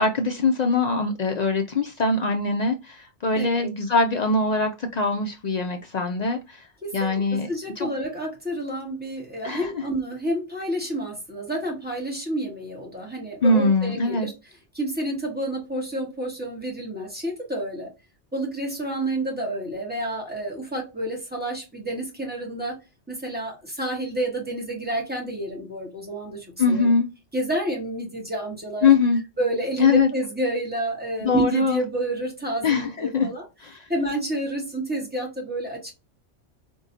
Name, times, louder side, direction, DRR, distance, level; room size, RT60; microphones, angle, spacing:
voice 1, 0.0-6.7 6.9-7.5 7.8-7.9 9.4-9.8 13.4-14.3 26.6-27.1 28.8-29.2 29.8-30.1 31.2-31.8 32.6-33.3 33.6-33.8, left 3 dB, 70° left, 0.4 m, -22 dB
voice 2, 3.3-3.7 6.8-14.3 14.7-17.9 18.3-22.8 23.1-26.9 27.3-28.9 29.4-33.4 33.9-35.9, right 1 dB, 10° right, 1.2 m, -29 dB
3.8 x 2.7 x 2.6 m
omnidirectional pair, 1.2 m